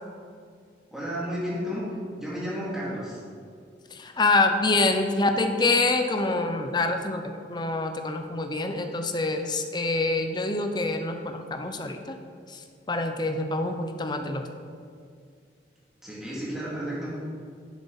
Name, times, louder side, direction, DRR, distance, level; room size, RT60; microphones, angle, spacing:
voice 1, 0.9-1.8 2.2-3.2 16.0-17.2, equal, 5° right, -8 dB, 2.5 m, -32 dB
voice 2, 3.9-12.2 12.5-12.6 12.9-14.5, left 2 dB, 25° left, 6 dB, 0.6 m, -26 dB
10.5 x 8.1 x 4.1 m, 2.2 s
head